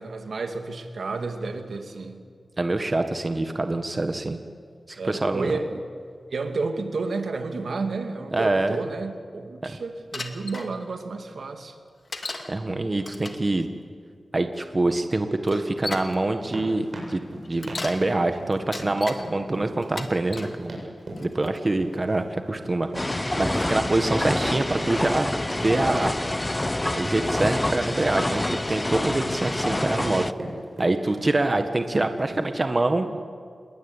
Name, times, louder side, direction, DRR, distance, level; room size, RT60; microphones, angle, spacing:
voice 1, 0.0-2.2 5.0-5.8 6.3-11.7, right 3 dB, 80° right, 5 dB, 2.4 m, -31 dB
voice 2, 2.6-4.4 4.9-5.5 8.3-8.8 9.6-9.7 12.5-13.7 14.3-17.2 17.5-20.7 21.2-25.3 25.6-26.1 26.9-28.4 28.7-30.2 30.8-33.2, right 2 dB, 35° right, 7 dB, 1.6 m, -25 dB
Bicycle, 10.1-10.7 12.1-12.5 13.0-13.5 14.6-14.7 15.5-16.1 17.4-18.0 18.5-19.2 19.8-20.6 21.2-21.6, left 3 dB, 45° left, 2.4 m, -35 dB
sound 1, 16.2-32.6, right 1 dB, 55° right, 7.9 m, -40 dB
sound 2, 22.9-30.3, left 1 dB, 20° left, 0.6 m, -27 dB
27.0 x 21.5 x 9.9 m, 2.1 s
wide cardioid pair, 100°, 0 cm